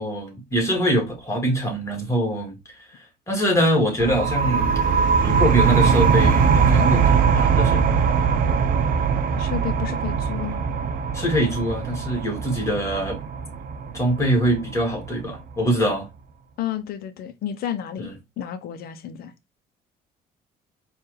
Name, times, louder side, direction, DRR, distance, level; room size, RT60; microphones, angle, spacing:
voice 1, 0.0-2.8 3.3-4.7 5.2-7.9 11.1-13.2 13.9-16.1 18.0-18.1, equal, 15° left, 1.9 m, -23 dB
sound 1, 4.0-15.4, right 6 dB, 55° right, 0.6 m, -21 dB
voice 2, 9.4-10.7 16.6-18.1 18.4-19.3, left 10 dB, 65° left, 0.7 m, -31 dB
4.5 x 2.5 x 3.2 m
cardioid pair, 110°, 17 cm